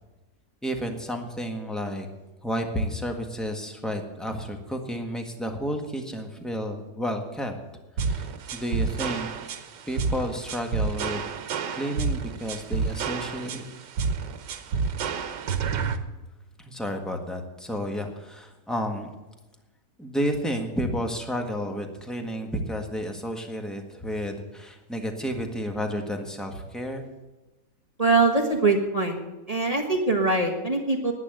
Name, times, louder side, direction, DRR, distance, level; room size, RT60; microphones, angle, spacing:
voice 1, 0.6-2.1 2.4-7.5 8.0-9.3 9.9-11.3 11.7-13.6 16.6-19.1 20.0-27.0, equal, ahead, 4 dB, 1.4 m, -31 dB
sound 1, 8.0-16.0, right 5 dB, 85° right, 1.6 m, -29 dB
voice 2, 28.0-29.2 29.5-31.1, right 3 dB, 25° right, 3 dB, 1.4 m, -22 dB
11.5 x 10.0 x 8.0 m, 1.1 s
omnidirectional pair, 1.8 m